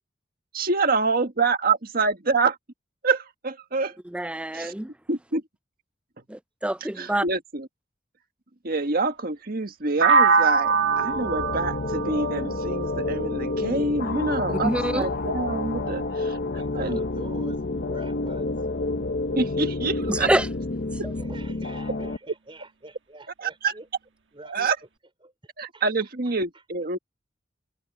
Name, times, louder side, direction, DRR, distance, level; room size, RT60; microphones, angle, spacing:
voice 1, 0.5-2.6 3.0-4.0 4.5-4.7 5.1-5.4 7.0-7.7 8.6-16.4 16.7-17.0 19.4-20.3 23.4-23.7 24.4-24.8 25.6-27.0, right 4 dB, 50° right, 1.6 m, -26 dB
voice 2, 4.1-4.9 6.3-7.2 14.6-15.1 20.1-20.5, right 1 dB, 5° right, 0.4 m, -26 dB
sound 1, 10.0-13.9, right 5 dB, 70° right, 1.5 m, -23 dB
sound 2, 10.6-22.2, left 2 dB, 55° left, 0.8 m, -29 dB
voice 3, 16.5-18.7 21.1-23.9 24.3-24.7 25.2-25.3 25.7-26.6, right 2 dB, 30° right, 4.3 m, -46 dB
head